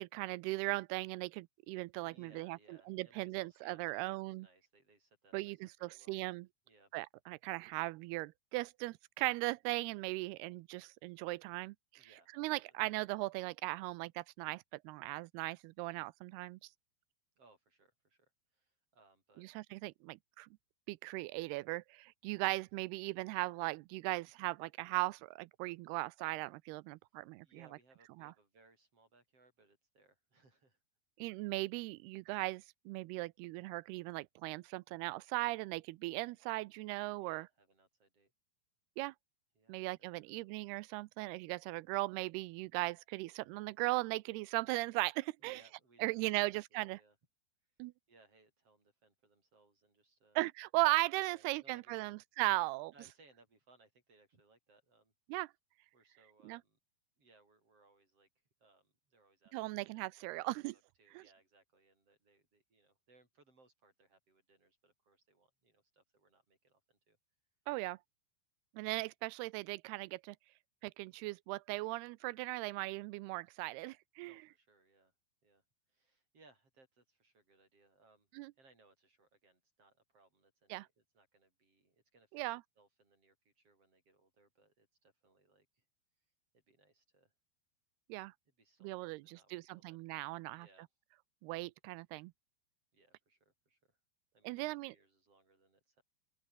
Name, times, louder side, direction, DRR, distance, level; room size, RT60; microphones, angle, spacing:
voice 1, 0.0-2.6 2.9-4.5 5.3-6.5 6.9-12.1 12.3-16.6 19.4-20.5 20.9-27.5 28.2-28.3 31.2-37.5 39.0-39.1 39.7-45.6 46.0-47.0 47.8-47.9 50.4-52.9 55.3-55.5 56.4-56.6 59.5-60.8 61.1-61.2 67.7-68.0 68.8-70.4 70.8-74.4 78.4-78.5 80.7-80.9 82.3-82.6 88.1-88.3 88.8-90.7 91.4-92.3 94.4-95.0, right 21 dB, 80° right, 2.5 m, -38 dB
voice 2, 2.0-6.2 6.7-6.9 12.0-12.8 17.4-19.5 27.4-30.8 37.2-38.3 39.5-39.8 40.1-40.6 45.4-47.2 48.1-50.4 51.2-52.2 52.9-55.1 55.9-56.8 57.2-58.3 58.6-59.6 59.9-67.2 74.2-75.1 75.4-78.3 78.6-82.4 82.8-85.8 86.5-87.3 88.5-90.0 90.4-90.9 92.9-94.0 94.3-96.0, right 3 dB, 35° right, 8.2 m, -68 dB
open air
omnidirectional pair, 4.8 m